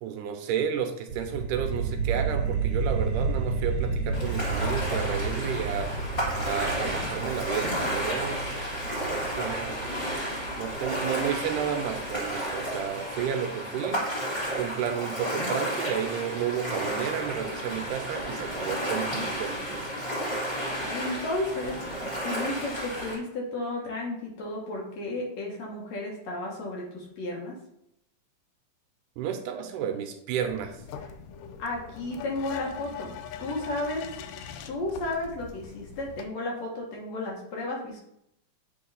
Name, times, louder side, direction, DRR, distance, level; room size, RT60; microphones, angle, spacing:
voice 1, 0.0-5.9 6.4-8.5 9.0-9.9 10.6-14.1 14.6-19.9 29.2-30.8, right 8 dB, 80° right, 6 dB, 2.1 m, -32 dB
sound 1, 1.1-12.1, right 4 dB, 65° right, 1.7 m, -31 dB
Ocean, 4.1-23.2, equal, 25° left, 0.9 m, -32 dB
voice 2, 20.9-27.5 31.6-34.1 34.7-38.0, left 2 dB, 60° left, -2 dB, 2.2 m, -33 dB
sound 2, 30.4-36.3, left 7 dB, 80° left, 2.1 m, -42 dB
8.4 x 3.6 x 3.9 m, 0.77 s
omnidirectional pair, 3.8 m